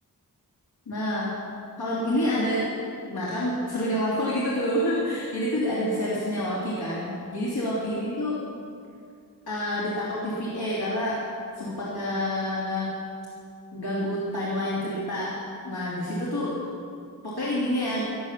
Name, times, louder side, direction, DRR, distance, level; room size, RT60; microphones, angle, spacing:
voice 1, 0.9-1.3 1.8-2.7 3.1-8.3 9.5-11.2 11.6-12.9 13.7-15.3 15.6-16.5 17.2-18.1, left 1 dB, 90° left, -8 dB, 2.9 m, -28 dB
16.0 x 11.0 x 7.3 m, 2.4 s
wide cardioid pair, 70°, 37 cm